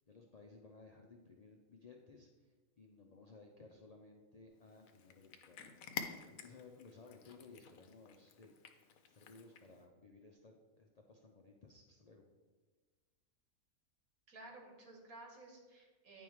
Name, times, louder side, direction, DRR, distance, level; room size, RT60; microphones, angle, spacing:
voice 1, 0.1-5.7 6.3-8.5 9.0-12.3, left 3 dB, 55° left, 0 dB, 0.4 m, -59 dB
Cat, 4.6-9.8, left 7 dB, 80° left, 1.1 m, -50 dB
voice 2, 14.3-16.2, right 2 dB, 80° right, 1 dB, 1.8 m, -55 dB
9.5 x 3.6 x 4.6 m, 1.3 s
omnidirectional pair, 1.4 m